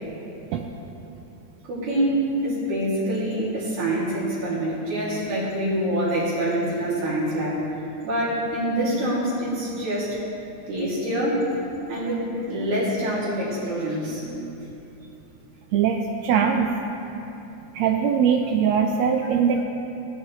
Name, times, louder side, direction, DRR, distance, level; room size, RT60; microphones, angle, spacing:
voice 1, 1.7-7.6 8.0-10.2 10.7-11.5 11.9-14.3, right 1 dB, 65° right, -9 dB, 3.9 m, -25 dB
voice 2, 15.7-16.7 17.7-19.6, right 7 dB, 85° right, 3 dB, 1.5 m, -22 dB
16.0 x 11.0 x 3.1 m, 3.0 s
omnidirectional pair, 3.6 m